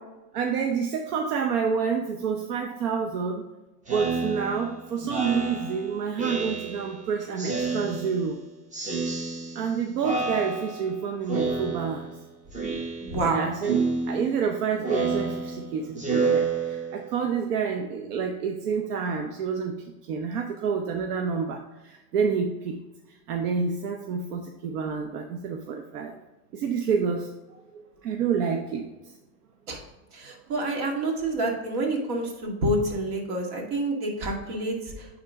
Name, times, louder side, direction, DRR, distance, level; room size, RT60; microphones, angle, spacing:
voice 1, 0.3-3.4 3.9-8.4 9.5-12.2 13.2-19.8 20.0-22.8 23.3-26.1 26.5-29.1 30.3-30.4, right 6 dB, 85° right, 3 dB, 0.8 m, -28 dB
Speech synthesizer, 3.9-7.0 7.4-8.4 8.7-9.7 10.0-10.9 11.3-12.2 12.5-13.3 13.6-17.2, right 4 dB, 15° right, 0.9 m, -29 dB
voice 2, 13.0-13.5 29.7-29.8 30.1-34.8, right 1 dB, 60° right, 1 dB, 2.0 m, -28 dB
9.6 x 3.7 x 3.6 m, 1.1 s
supercardioid pair, 110°, 45 cm